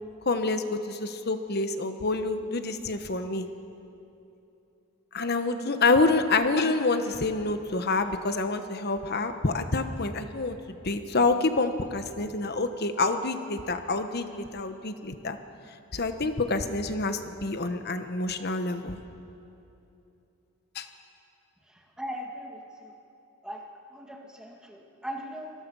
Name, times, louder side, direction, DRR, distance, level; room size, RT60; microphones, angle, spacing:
voice 1, 0.2-3.5 5.1-10.6 10.8-15.4 15.9-19.0 20.7-20.9, left 3 dB, 50° left, 8 dB, 1.2 m, -27 dB
voice 2, 21.7-22.9 23.4-23.6 23.9-25.5, equal, 5° right, 0 dB, 1.9 m, -39 dB
25.0 x 19.5 x 5.5 m, 2.9 s
head